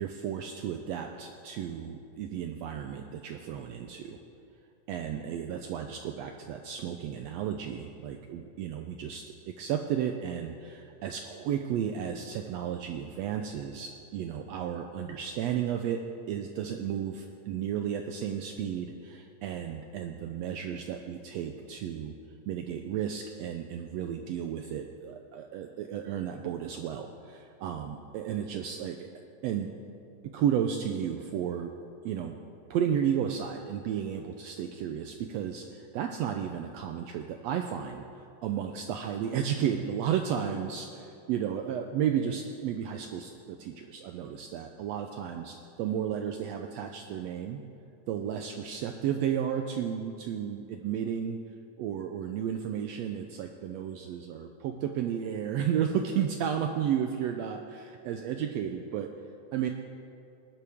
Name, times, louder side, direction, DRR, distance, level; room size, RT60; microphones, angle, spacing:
voice 1, 0.0-4.2 4.9-16.0 16.3-22.1 22.5-29.1 29.4-29.7 30.2-31.7 32.0-32.4 32.7-38.0 38.4-47.6 48.1-51.4 51.8-59.1 59.5-59.7, right 9 dB, 85° right, 5 dB, 1.5 m, -33 dB
19.0 x 11.5 x 3.6 m, 2.6 s
omnidirectional pair, 3.6 m